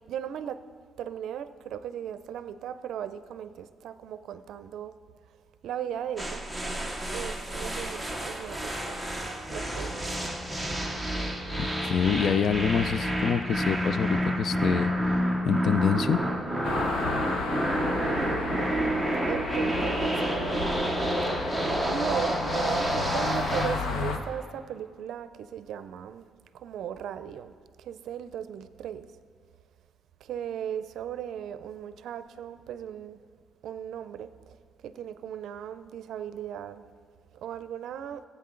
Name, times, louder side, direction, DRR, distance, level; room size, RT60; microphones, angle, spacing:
voice 1, 0.1-0.6 1.0-5.0 5.6-6.5 7.1-9.0 9.5-10.3 17.8-18.7 19.3-20.7 21.8-29.1 30.2-33.2 33.6-34.6 34.8-36.9 37.3-38.2, right 9 dB, 70° right, 0.5 m, -37 dB
sound 1, 6.2-23.9, equal, ahead, 1.0 m, -29 dB
voice 2, 11.6-14.9 15.5-16.2, left 7 dB, 55° left, 0.4 m, -26 dB
sound 2, 16.6-24.2, left 4 dB, 70° left, 1.1 m, -33 dB
20.5 x 8.3 x 3.8 m
cardioid pair, 150°, 0 cm